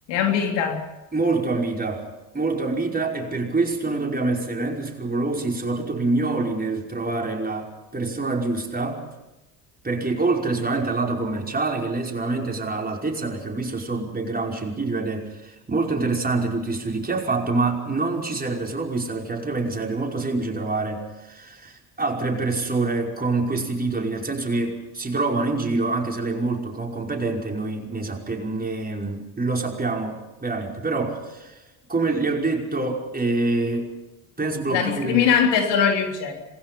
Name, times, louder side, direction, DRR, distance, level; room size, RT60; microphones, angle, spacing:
voice 1, 0.1-0.8 34.7-36.5, left 7 dB, 65° left, 3 dB, 3.5 m, -21 dB
voice 2, 1.1-2.0 2.3-9.1 9.8-31.6 31.9-33.9 34.4-35.2, right 3 dB, 20° right, 0 dB, 5.4 m, -26 dB
27.0 x 21.0 x 5.5 m, 1.0 s
hypercardioid pair, 60°, 46 cm